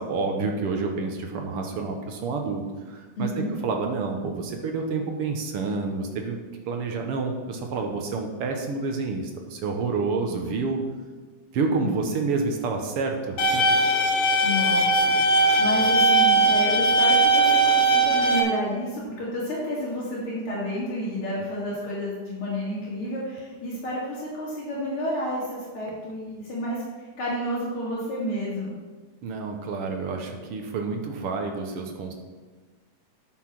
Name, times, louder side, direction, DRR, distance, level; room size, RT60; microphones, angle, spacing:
voice 1, 0.0-2.6 2.9-3.3 3.6-6.4 6.7-10.8 11.5-13.6 29.2-32.1, right 4 dB, 65° right, 3 dB, 1.5 m, -28 dB
voice 2, 3.2-3.5 10.2-10.7 11.8-12.1 14.4-28.7, equal, 45° left, -9 dB, 3.0 m, -30 dB
sound 1, 13.4-18.4, right 2 dB, 70° left, 2.7 m, -19 dB
9.8 x 6.8 x 5.9 m, 1.3 s
omnidirectional pair, 3.7 m